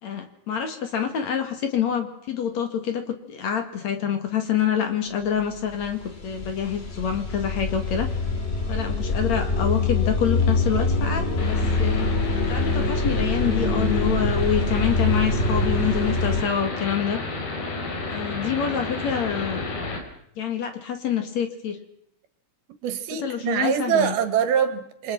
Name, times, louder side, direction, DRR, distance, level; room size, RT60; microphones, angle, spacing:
voice 1, 0.0-8.1 8.7-12.1 12.5-17.2 18.1-19.7 20.4-21.8 23.2-24.2, left 8 dB, 50° left, 7 dB, 3.0 m, -26 dB
sound 1, 5.4-5.5 5.7-16.4, left 3 dB, 20° left, 1.8 m, -24 dB
sound 2, 11.4-20.0, left 2 dB, 80° left, 5.9 m, -32 dB
voice 2, 22.8-25.1, right 8 dB, 85° right, 11 dB, 3.6 m, -24 dB
28.5 x 24.0 x 6.0 m, 0.71 s
omnidirectional pair, 4.3 m